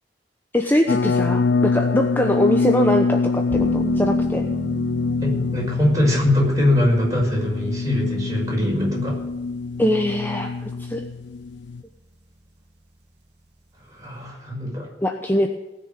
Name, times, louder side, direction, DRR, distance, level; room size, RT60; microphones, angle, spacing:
voice 1, 0.5-4.4 9.8-11.0 15.0-15.5, equal, 10° left, 3 dB, 0.9 m, -22 dB
sound 1, 0.9-11.8, left 4 dB, 85° left, 0.5 m, -24 dB
sound 2, 3.5-14.3, equal, 70° right, 2.9 m, -36 dB
voice 2, 5.2-9.2 13.8-14.9, left 1 dB, 20° right, -2 dB, 5.9 m, -22 dB
19.5 x 6.7 x 9.0 m, 1.0 s
head